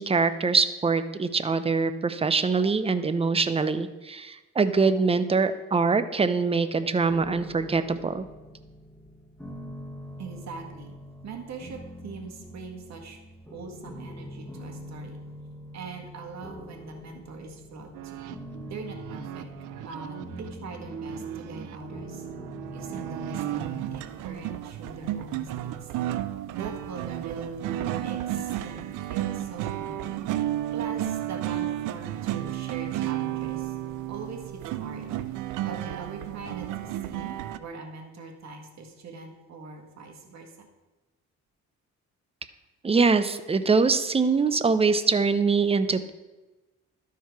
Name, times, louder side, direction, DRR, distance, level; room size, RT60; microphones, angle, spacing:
voice 1, 0.0-8.2 42.8-46.1, right 4 dB, 20° right, 12 dB, 0.6 m, -23 dB
sound 1, 7.1-26.0, equal, 5° left, 1.6 m, -44 dB
voice 2, 10.2-11.0 11.2-13.2 13.5-15.2 15.7-18.2 18.7-19.5 19.8-22.2 22.7-25.9 26.5-30.1 30.7-33.8 34.1-35.2 35.6-40.7, right 4 dB, 60° right, 2 dB, 1.6 m, -42 dB
sound 2, 17.9-37.6, right 12 dB, 90° right, 0.5 m, -33 dB
12.5 x 4.7 x 4.6 m, 1.1 s
cardioid pair, 90°, 30 cm